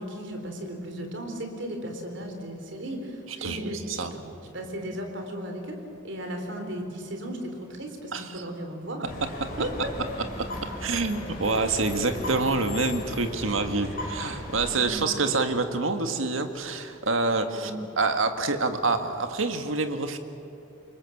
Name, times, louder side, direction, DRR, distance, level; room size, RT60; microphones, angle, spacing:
voice 1, 0.0-5.8 6.0-9.1 9.6-9.7 10.0-10.1 14.7-15.1 17.5-17.7, right 1 dB, 65° right, 4 dB, 3.9 m, -36 dB
voice 2, 8.1-8.4 10.4-10.5 10.8-17.7 18.0-20.2, right 3 dB, 80° right, 7 dB, 1.8 m, -27 dB
sound 1, 9.1-14.8, left 1 dB, 45° left, 5.7 m, -37 dB
27.0 x 23.0 x 7.3 m, 2.8 s
head